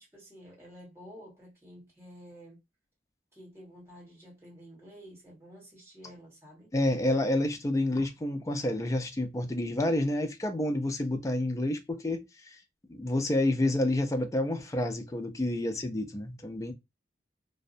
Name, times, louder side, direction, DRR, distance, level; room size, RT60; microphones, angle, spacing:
voice 1, 0.0-2.6 3.3-6.7 13.6-13.8, equal, 15° right, 1.2 m, -51 dB
voice 2, 6.7-12.6 12.9-16.7, left 1 dB, 15° left, 0.3 m, -29 dB
2.6 x 2.1 x 2.5 m
head